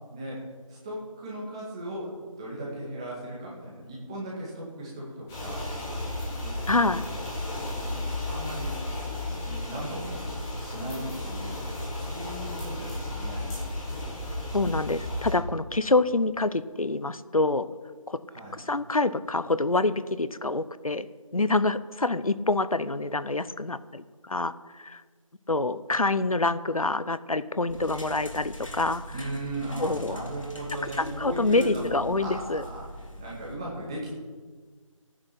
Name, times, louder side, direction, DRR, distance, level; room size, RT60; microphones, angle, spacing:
voice 1, 0.1-2.1 2.4-5.7 6.4-6.6 7.4-8.8 9.3-13.5 18.3-18.6 29.1-34.1, right 1 dB, 10° right, -6 dB, 1.9 m, -37 dB
sound 1, 5.3-15.3, left 1 dB, 5° left, 1.3 m, -34 dB
voice 2, 6.7-7.0 14.5-17.6 18.1-18.2 18.6-21.1 21.3-25.0 25.5-29.0 29.8-30.2 31.0-32.6, left 2 dB, 85° left, 14 dB, 0.9 m, -26 dB
sound 2, 27.7-33.6, equal, 65° left, 2.8 m, -42 dB
14.5 x 9.6 x 5.9 m, 1.5 s
figure-of-eight pair, 170°, 18 cm